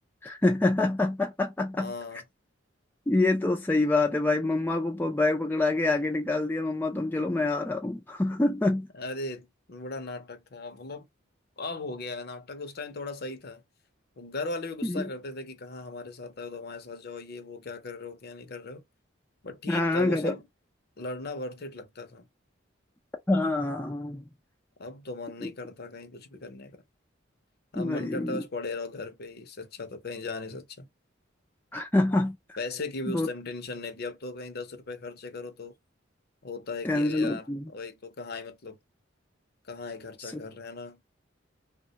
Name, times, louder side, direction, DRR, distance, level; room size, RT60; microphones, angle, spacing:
voice 1, 0.2-1.9 3.1-8.9 14.8-15.0 19.7-20.3 23.3-24.2 25.4-25.5 27.8-28.4 31.7-32.4 33.1-33.3 36.8-37.6 40.2-40.4, left 2 dB, 10° left, 0.3 m, -26 dB
voice 2, 1.8-2.2 8.9-11.0 11.6-13.6 14.2-18.8 19.4-20.4 21.0-22.3 24.8-26.8 27.7-30.9 32.6-35.7 36.4-37.5 37.7-38.8 39.7-41.0, left 3 dB, 50° left, 0.6 m, -38 dB
3.3 x 2.2 x 2.8 m
head